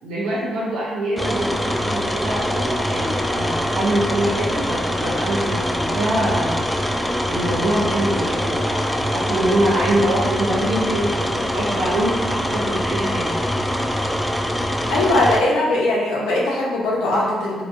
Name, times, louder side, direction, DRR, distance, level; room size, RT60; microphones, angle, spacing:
voice 1, 0.0-6.6 7.2-13.3, right 1 dB, 70° right, -7 dB, 0.8 m, -24 dB
sound 1, 1.2-15.4, equal, 5° left, 0.4 m, -23 dB
voice 2, 14.9-17.6, left 2 dB, 70° left, -4 dB, 0.7 m, -20 dB
3.3 x 2.8 x 2.7 m, 1.5 s
hypercardioid pair, 40°, 0 cm